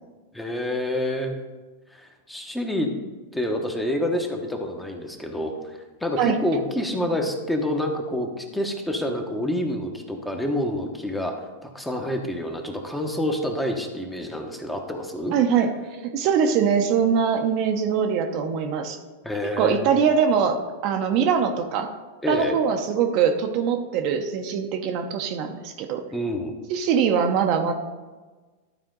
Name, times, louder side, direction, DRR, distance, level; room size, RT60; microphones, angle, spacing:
voice 1, 0.3-1.4 1.9-2.9 3.3-15.3 19.2-20.0 22.2-22.6 26.1-26.5, left 1 dB, 5° left, 3 dB, 1.2 m, -28 dB
voice 2, 15.3-15.7 16.0-19.0 19.6-21.9 22.3-26.1 26.7-27.7, right 7 dB, 50° right, 5 dB, 0.8 m, -22 dB
12.0 x 4.4 x 3.9 m, 1.3 s
hypercardioid pair, 105°, 0 cm